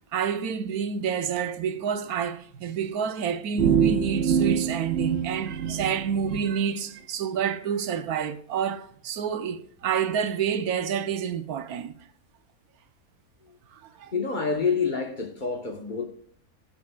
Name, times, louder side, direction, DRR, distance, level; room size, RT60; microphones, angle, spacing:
voice 1, 0.1-11.9 13.7-14.1, right 7 dB, 85° right, 1.3 m, -29 dB
sound 1, 3.6-6.4, right 7 dB, 55° right, 1.0 m, -25 dB
voice 2, 14.1-16.0, left 5 dB, 35° left, 1.3 m, -27 dB
17.0 x 7.2 x 2.4 m
omnidirectional pair, 1.5 m